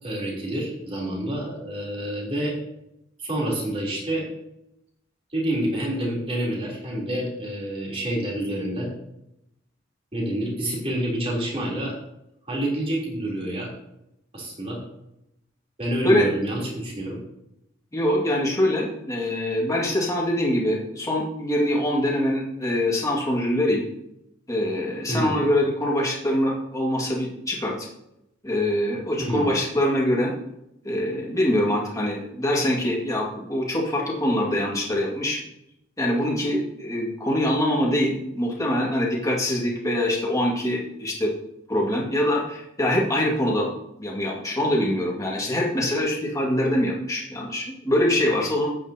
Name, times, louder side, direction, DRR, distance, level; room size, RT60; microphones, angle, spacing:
voice 1, 0.0-2.6 3.2-4.3 5.3-8.9 10.1-11.9 12.5-13.7 14.3-14.8 15.8-17.2 25.1-25.3 29.2-29.5, right 1 dB, 30° right, -3 dB, 3.5 m, -28 dB
voice 2, 17.9-23.8 24.5-27.9 28.4-30.3 30.8-35.4 36.0-41.3 41.7-43.7 44.0-48.7, left 1 dB, 15° left, -2 dB, 2.1 m, -24 dB
13.5 x 9.0 x 2.9 m, 0.84 s
head